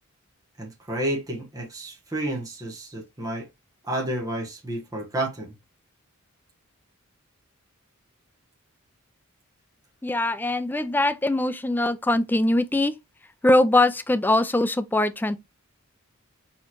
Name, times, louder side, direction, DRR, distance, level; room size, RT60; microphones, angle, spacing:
voice 1, 0.6-3.5 3.8-5.5, right 1 dB, 15° right, 1.2 m, -30 dB
voice 2, 10.0-12.9 13.4-15.4, left 1 dB, 10° left, 0.4 m, -22 dB
4.2 x 3.7 x 3.0 m
head